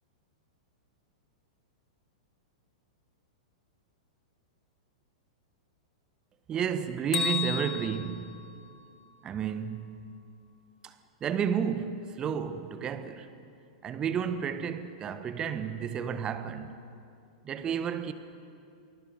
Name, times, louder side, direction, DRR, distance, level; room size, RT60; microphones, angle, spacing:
voice 1, 6.5-8.4 9.2-10.1 10.8-10.9 11.2-13.3 13.8-16.8 17.4-18.1, right 8 dB, 25° right, 1.4 m, -32 dB
Bell, 7.1-9.2, left 7 dB, 25° left, 1.9 m, -34 dB
28.5 x 20.5 x 6.9 m
figure-of-eight pair, 100°, 3 cm